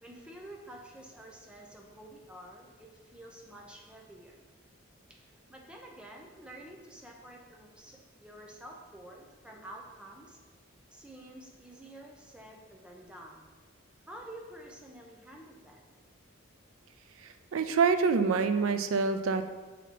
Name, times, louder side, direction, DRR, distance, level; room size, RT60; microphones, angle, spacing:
voice 1, 0.0-4.4 5.1-10.4 10.9-13.4 14.1-15.8, right 1 dB, 5° right, 0 dB, 0.6 m, -49 dB
voice 2, 17.2-19.5, right 5 dB, 85° right, 10 dB, 0.4 m, -27 dB
6.8 x 4.1 x 4.6 m, 1.3 s
head